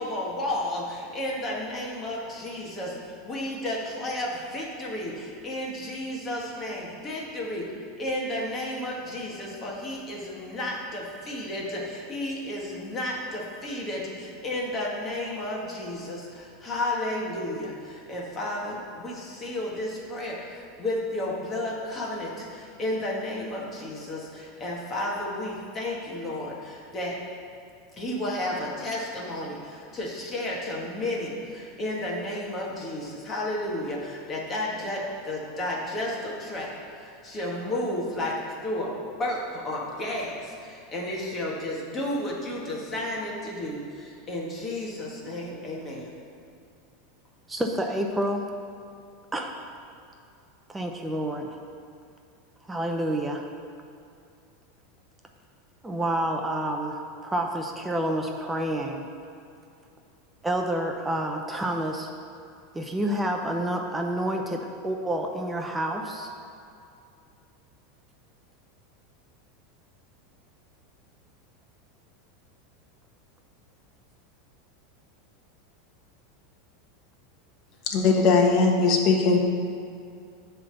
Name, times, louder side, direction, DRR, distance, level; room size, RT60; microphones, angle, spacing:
voice 1, 0.0-3.0 3.2-7.7 8.0-27.2 28.0-38.4 38.6-46.1, left 1 dB, 25° left, -3 dB, 1.6 m, -32 dB
voice 2, 47.5-48.5 49.3-49.5 50.7-51.6 52.7-53.5 55.8-59.1 60.4-62.1 62.7-66.3, right 1 dB, 10° right, 2 dB, 0.7 m, -29 dB
voice 3, 77.9-79.4, left 4 dB, 50° left, 2 dB, 1.2 m, -20 dB
9.6 x 3.5 x 6.8 m, 2.5 s
supercardioid pair, 130°, 0 cm